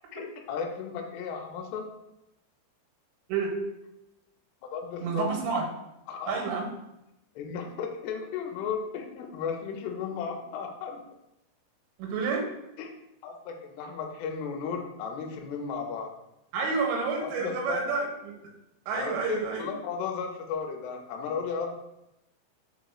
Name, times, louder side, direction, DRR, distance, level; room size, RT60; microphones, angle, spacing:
voice 1, 0.1-1.9 4.6-5.3 6.1-6.4 7.4-11.0 12.8-12.9 13.2-16.1 17.2-17.8 19.0-21.7, left 6 dB, 85° left, 2 dB, 2.5 m, -34 dB
voice 2, 5.0-5.6 6.3-6.7 12.0-12.5 16.5-18.4 18.9-19.7, right 4 dB, 90° right, 0 dB, 3.1 m, -29 dB
5.8 x 3.9 x 2.3 m, 0.89 s
omnidirectional pair, 5.1 m